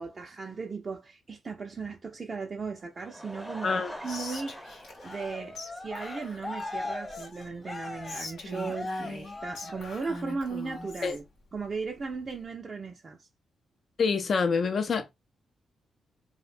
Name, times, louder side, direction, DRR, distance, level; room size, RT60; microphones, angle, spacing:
voice 1, 0.0-4.8 5.0-11.2 11.5-13.3, right 4 dB, 45° right, 0.4 m, -37 dB
Laughter / Crowd, 2.8-6.3 6.6-6.7 7.2-7.3 7.5-7.6, equal, 5° left, 0.6 m, -44 dB
voice 2, 3.6-3.9 11.0-11.2 14.0-15.1, left 5 dB, 60° left, 0.4 m, -26 dB
Whispering, 4.0-5.3 5.5-5.7 5.9-7.5 8.0-11.2, left 2 dB, 80° left, 0.8 m, -42 dB
Cheering, 5.0-10.2 10.7-11.1, left 2 dB, 30° left, 0.8 m, -39 dB
2.6 x 2.1 x 2.5 m
supercardioid pair, 50°, 0 cm